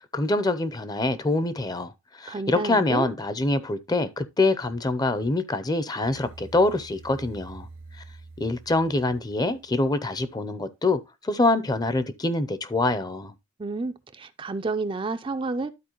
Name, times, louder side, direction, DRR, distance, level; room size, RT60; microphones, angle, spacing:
voice 1, 0.1-1.9 2.2-7.7 8.4-13.3, left 2 dB, 20° left, 0.6 m, -25 dB
voice 2, 2.3-3.1 13.6-15.7, right 3 dB, 25° right, 0.4 m, -30 dB
sound 1, 6.0-10.1, right 3 dB, 85° right, 1.0 m, -47 dB
12.5 x 4.3 x 3.0 m
head